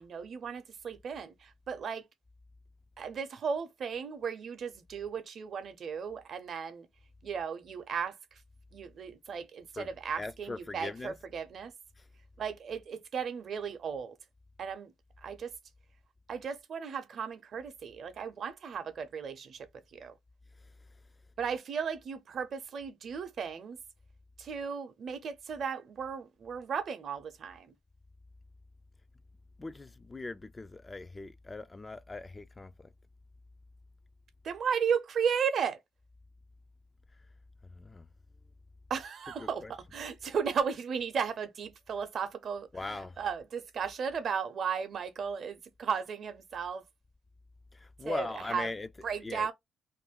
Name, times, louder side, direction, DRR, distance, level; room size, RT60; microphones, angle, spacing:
voice 1, 0.0-1.3 1.7-2.0 3.0-6.9 7.2-8.1 8.7-11.7 12.4-14.1 14.6-14.9 15.2-15.5 16.3-19.6 20.0-20.1 21.4-23.8 24.4-27.7 34.4-35.8 38.9-46.8 48.1-48.7 49.0-49.5, right 6 dB, 60° right, 0.7 m, -35 dB
voice 2, 10.1-11.1 29.6-32.7 37.8-38.0 39.4-39.7 42.7-43.1 48.0-48.9 49.2-49.5, left 3 dB, 25° left, 0.3 m, -40 dB
2.5 x 2.2 x 3.6 m
supercardioid pair, 70°, 0 cm